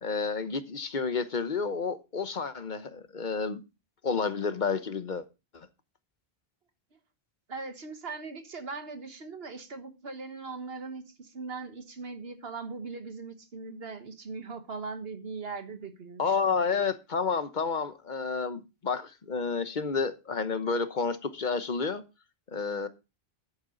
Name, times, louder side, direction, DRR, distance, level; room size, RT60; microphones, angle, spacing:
voice 1, 0.0-3.6 4.0-5.2 5.5-5.7 16.2-22.0 22.5-22.9, left 5 dB, 50° left, 1.1 m, -30 dB
voice 2, 7.5-16.6, right 4 dB, 70° right, 1.6 m, -40 dB
10.5 x 8.9 x 3.9 m
omnidirectional pair, 1.1 m